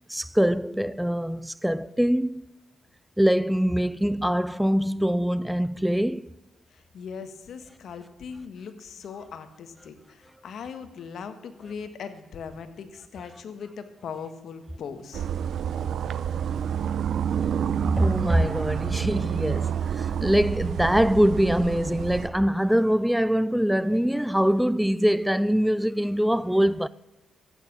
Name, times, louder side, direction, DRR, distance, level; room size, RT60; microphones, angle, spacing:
voice 1, 0.1-2.4 3.2-6.3 17.8-26.9, equal, 5° right, 0.3 m, -23 dB
voice 2, 6.7-15.3, left 6 dB, 75° left, 1.4 m, -39 dB
sound 1, 15.1-22.3, right 8 dB, 75° right, 0.6 m, -28 dB
14.0 x 9.3 x 6.1 m
cardioid pair, 75°, 0 cm